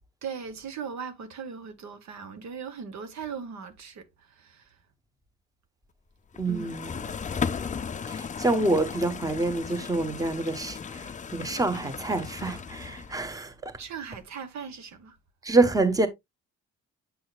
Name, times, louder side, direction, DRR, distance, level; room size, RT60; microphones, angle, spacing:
voice 1, 0.2-4.7 6.5-6.7 13.8-15.2, right 6 dB, 65° right, 1.1 m, -39 dB
sound 1, 6.4-13.4, left 6 dB, 25° left, 0.5 m, -36 dB
voice 2, 6.4-7.0 8.1-13.8 15.4-16.1, right 2 dB, 10° right, 1.0 m, -27 dB
6.9 x 6.2 x 2.3 m
cardioid pair, 90°, 30 cm